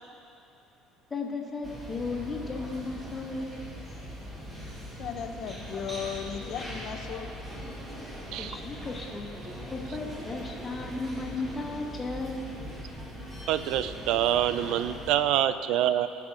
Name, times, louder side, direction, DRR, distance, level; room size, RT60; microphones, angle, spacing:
voice 1, 1.1-3.6 5.7-5.8 8.4-9.3 9.7-12.5, left 3 dB, 20° left, -1 dB, 1.7 m, -35 dB
sound 1, 1.6-15.1, equal, 20° right, 2.2 m, -41 dB
voice 2, 5.0-7.3 8.3-8.4, left 8 dB, 55° left, 6 dB, 0.9 m, -36 dB
voice 3, 13.5-16.1, right 11 dB, 70° right, 12 dB, 0.5 m, -26 dB
18.0 x 6.0 x 4.9 m, 2.7 s
cardioid pair, 120°, 0 cm